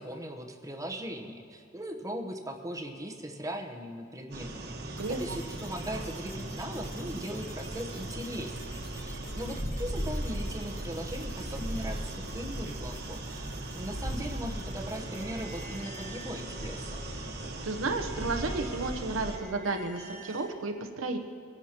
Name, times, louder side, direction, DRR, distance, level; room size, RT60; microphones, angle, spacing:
voice 1, 0.0-17.0, equal, 15° right, 3 dB, 1.0 m, -39 dB
sound 1, 4.3-19.4, right 1 dB, 55° right, 1.3 m, -37 dB
sound 2, 5.0-16.6, equal, 15° left, 1.7 m, -53 dB
voice 2, 5.0-5.4 17.6-21.2, right 3 dB, 85° right, 6 dB, 0.9 m, -32 dB
sound 3, 14.9-20.5, right 1 dB, 80° left, 2.2 m, -48 dB
22.5 x 11.0 x 3.0 m, 2.6 s
head